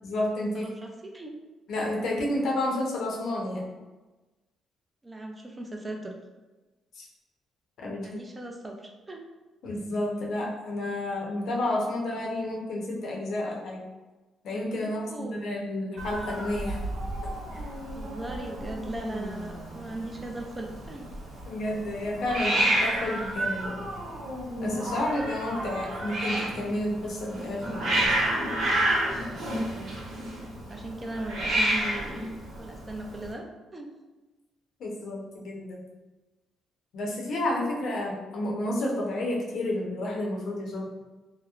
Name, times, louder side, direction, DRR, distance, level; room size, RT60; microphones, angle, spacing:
voice 1, 0.0-0.7 1.7-3.7 6.9-7.1 7.8-8.2 9.6-13.8 14.4-16.8 17.5-17.6 21.5-23.8 24.6-28.1 34.8-35.8 36.9-40.9, left 1 dB, 70° left, -2 dB, 0.6 m, -30 dB
voice 2, 0.5-1.3 5.0-6.1 8.0-9.2 14.8-15.5 17.9-21.1 29.1-30.0 30.7-32.3 32.6-33.5 33.7-33.9, right 1 dB, 20° right, 1 dB, 0.4 m, -38 dB
Hiss, 16.0-33.3, right 1 dB, 85° right, 1.0 m, -30 dB
2.8 x 2.0 x 2.4 m, 1.2 s
cardioid pair, 90°, 0 cm